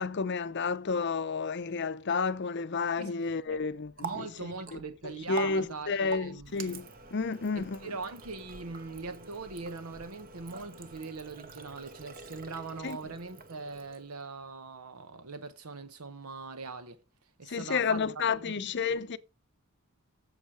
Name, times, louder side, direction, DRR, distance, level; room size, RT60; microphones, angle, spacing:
voice 1, 0.0-4.3 4.7-4.8 5.3-7.9 12.8-13.0 17.5-19.2, left 5 dB, 50° left, 0.6 m, -31 dB
Water tap faucet, 3.5-14.3, right 5 dB, 40° right, 1.1 m, -46 dB
voice 2, 4.0-6.5 7.6-18.0 18.4-18.5 18.9-19.0, right 4 dB, 80° right, 1.0 m, -41 dB
8.1 x 7.4 x 4.9 m
head